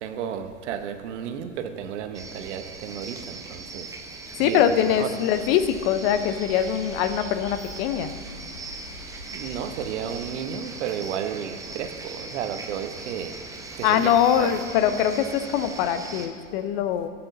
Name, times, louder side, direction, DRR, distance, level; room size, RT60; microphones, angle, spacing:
voice 1, 0.0-3.9 4.4-5.2 9.3-13.4 13.8-14.5, right 8 dB, 65° right, 8 dB, 1.0 m, -33 dB
sound 1, 2.1-16.3, right 3 dB, 10° right, 0.8 m, -40 dB
voice 2, 4.4-8.1 13.8-17.1, left 9 dB, 45° left, 11 dB, 0.7 m, -23 dB
sound 2, 5.3-10.3, left 2 dB, 85° left, 1.3 m, -44 dB
14.5 x 8.8 x 2.6 m, 2.4 s
hypercardioid pair, 105°, 39 cm